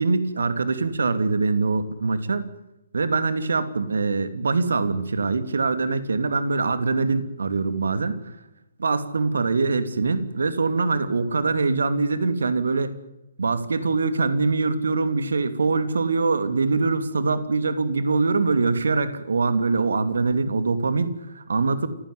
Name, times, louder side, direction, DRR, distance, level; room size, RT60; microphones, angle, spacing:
voice 1, 0.0-2.4 2.9-8.3 8.8-12.9 13.4-21.9, right 4 dB, 70° right, 12 dB, 2.7 m, -23 dB
28.0 x 16.0 x 9.6 m, 0.90 s
figure-of-eight pair, 130°, 0 cm